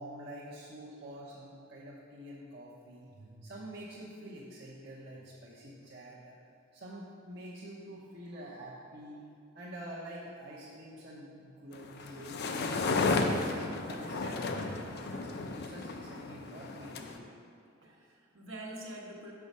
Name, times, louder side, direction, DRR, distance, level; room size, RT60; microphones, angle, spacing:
voice 1, 0.0-6.4 6.7-9.2 9.5-12.6 13.2-17.3, right 1 dB, 55° right, -7 dB, 0.8 m, -47 dB
sound 1, 11.7-17.2, left 3 dB, 55° left, 0.5 m, -33 dB
voice 2, 16.0-16.5 17.8-19.3, right 1 dB, 70° right, -2 dB, 1.1 m, -46 dB
6.2 x 4.6 x 5.4 m, 2.3 s
head